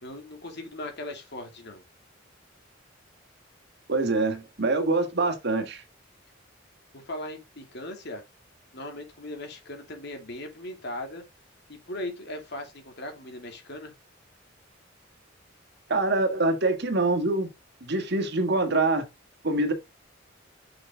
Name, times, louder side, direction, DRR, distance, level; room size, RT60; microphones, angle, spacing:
voice 1, 0.0-1.8 6.9-8.2 8.7-11.2 11.7-13.9, left 1 dB, 60° left, 2.7 m, -38 dB
voice 2, 3.9-5.8 15.9-17.5 17.8-19.1 19.4-19.7, right 2 dB, 60° right, 1.8 m, -25 dB
6.8 x 6.0 x 3.7 m
head